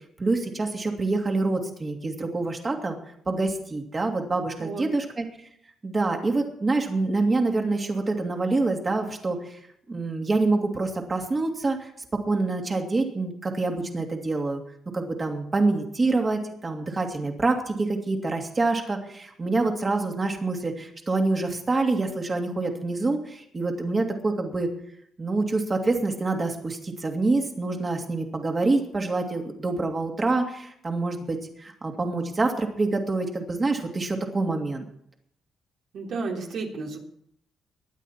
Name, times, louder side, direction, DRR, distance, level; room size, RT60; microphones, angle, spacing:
voice 1, 0.2-3.0 3.3-5.2 5.8-9.6 9.9-14.6 14.9-24.7 25.2-34.8, right 3 dB, 30° right, 3 dB, 2.7 m, -26 dB
voice 2, 35.9-37.0, right 4 dB, 65° right, 0 dB, 3.5 m, -32 dB
22.0 x 9.2 x 4.4 m, 0.70 s
cardioid pair, 90°, 0 cm